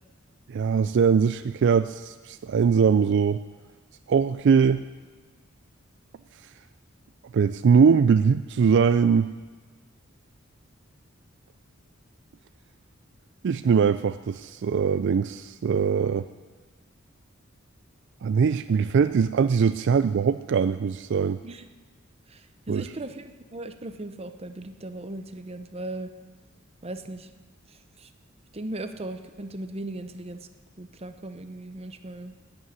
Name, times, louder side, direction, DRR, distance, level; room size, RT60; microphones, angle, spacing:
voice 1, 0.5-3.4 4.1-4.8 7.3-9.3 13.4-16.3 18.2-21.4 22.7-22.9, right 6 dB, 60° right, 12 dB, 0.3 m, -21 dB
voice 2, 22.7-26.1 26.8-27.3 28.0-28.1 28.5-30.5 30.8-32.4, right 2 dB, 30° right, 8 dB, 0.8 m, -37 dB
11.0 x 9.2 x 9.5 m, 1.4 s
head